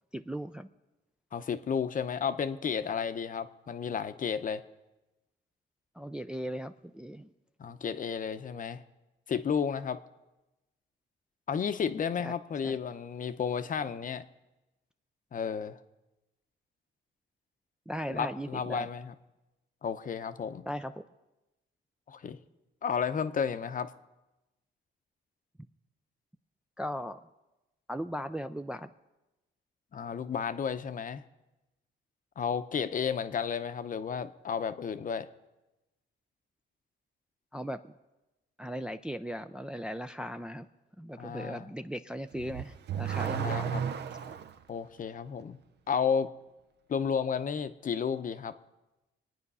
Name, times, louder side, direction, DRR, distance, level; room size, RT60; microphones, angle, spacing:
voice 1, 0.1-0.7 5.9-7.3 12.2-12.3 12.6-12.8 17.9-18.9 20.7-21.0 26.8-27.3 27.9-28.9 37.5-37.9 38.6-40.7 41.0-43.7, equal, 5° right, 7 dB, 0.4 m, -38 dB
voice 2, 1.3-4.6 7.6-8.8 9.3-10.0 11.5-14.2 15.3-15.8 18.1-19.1 19.8-20.7 22.1-22.4 22.8-23.9 29.9-31.2 32.4-35.3 41.2-41.6 43.4-43.8 44.7-45.6 45.9-46.3 46.9-48.5, left 7 dB, 40° left, 11 dB, 0.8 m, -32 dB
Car / Accelerating revving vroom, 42.3-44.6, right 8 dB, 60° right, 0.8 m, -33 dB
24.0 x 9.4 x 5.5 m, 1.0 s
cardioid pair, 110°, 20 cm